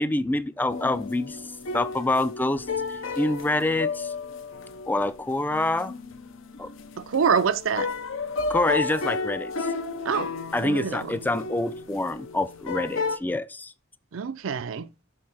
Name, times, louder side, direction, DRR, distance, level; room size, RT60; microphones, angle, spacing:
voice 1, 0.0-1.4 1.7-4.1 4.9-5.9 6.6-6.7 8.5-9.7 10.5-13.7, left 2 dB, 10° left, 0.3 m, -26 dB
sound 1, 0.7-13.2, left 4 dB, 70° left, 0.7 m, -33 dB
voice 2, 7.0-7.9 10.0-10.3 10.6-11.2 14.1-14.9, right 6 dB, 70° right, 0.5 m, -25 dB
6.6 x 3.8 x 4.2 m
head